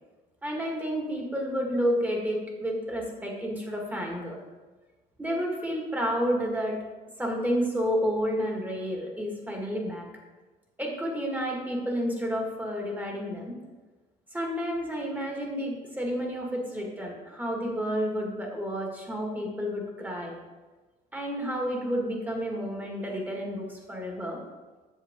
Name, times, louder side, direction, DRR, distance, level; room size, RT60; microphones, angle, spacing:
voice 1, 0.4-4.4 5.2-6.8 7.2-10.1 10.8-13.6 14.3-20.4 21.1-24.4, equal, 10° right, 0 dB, 2.0 m, -30 dB
8.2 x 6.8 x 3.8 m, 1.2 s
cardioid pair, 110°, 17 cm